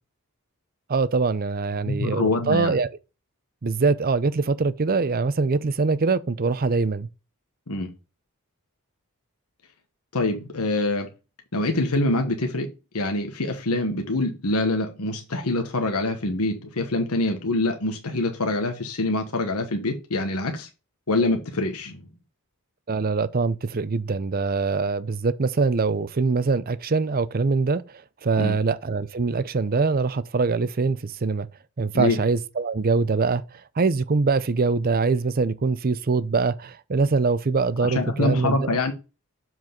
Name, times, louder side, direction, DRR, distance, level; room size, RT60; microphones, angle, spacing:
voice 1, 0.9-2.9 3.6-7.1 22.9-27.8 28.2-31.5 31.8-38.7, right 4 dB, 40° right, 0.5 m, -23 dB
voice 2, 1.8-2.7 7.7-7.9 10.1-11.1 11.5-12.7 12.9-20.7 21.1-22.0 28.4-28.6 31.9-32.2 37.8-38.9, left 2 dB, 80° left, 1.3 m, -25 dB
7.4 x 4.6 x 3.8 m
head